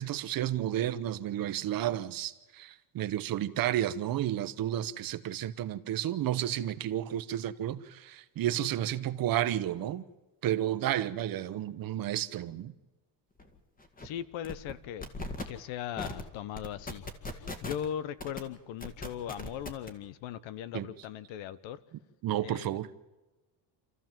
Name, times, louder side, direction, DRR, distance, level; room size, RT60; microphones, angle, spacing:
voice 1, 0.0-10.0 10.4-12.7 20.7-20.9 22.2-22.9, right 12 dB, 50° right, 1.0 m, -31 dB
sound 1, 13.4-13.5 13.8-14.1 14.4-14.7 15.0-15.4 16.0-16.2 16.5-17.8 18.2-18.4 18.8-19.9, left 2 dB, 20° left, 2.0 m, -38 dB
voice 2, 14.0-15.1 15.5-21.8 22.4-22.8, left 10 dB, 80° left, 1.1 m, -39 dB
27.5 x 14.0 x 7.5 m
cardioid pair, 165°, 46 cm